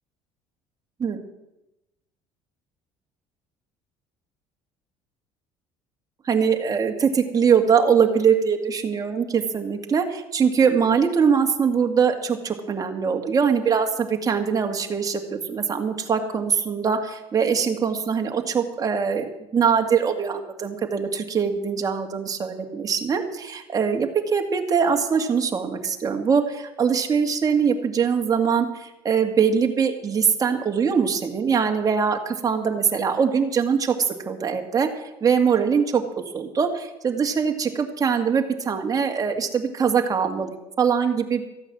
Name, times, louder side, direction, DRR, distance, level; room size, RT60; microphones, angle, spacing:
voice 1, 6.3-34.9 35.2-41.4, right 6 dB, 30° right, 4 dB, 2.1 m, -22 dB
14.5 x 8.8 x 7.6 m, 0.95 s
supercardioid pair, 105°, 12 cm